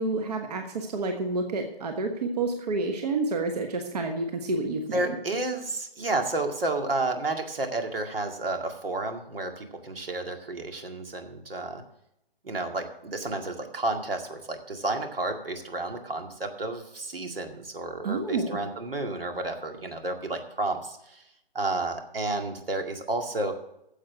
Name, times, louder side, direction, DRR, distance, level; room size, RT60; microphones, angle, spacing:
voice 1, 0.0-5.2 18.0-18.6, right 3 dB, 45° right, 5 dB, 1.3 m, -29 dB
voice 2, 4.9-11.8 12.4-21.2 21.5-23.5, right 2 dB, 75° right, 5 dB, 2.2 m, -31 dB
10.0 x 7.6 x 6.8 m, 0.81 s
figure-of-eight pair, 150°, 29 cm